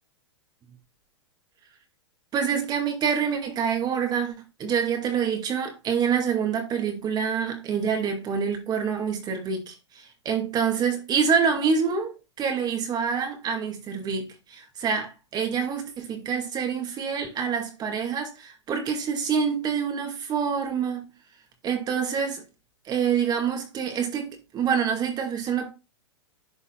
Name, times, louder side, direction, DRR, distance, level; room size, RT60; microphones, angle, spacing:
voice 1, 2.3-4.3 4.6-21.0 21.6-22.4 22.9-25.7, right 6 dB, 25° right, 2.1 m, -26 dB
11.0 x 5.5 x 2.3 m
hypercardioid pair, 115°, 15 cm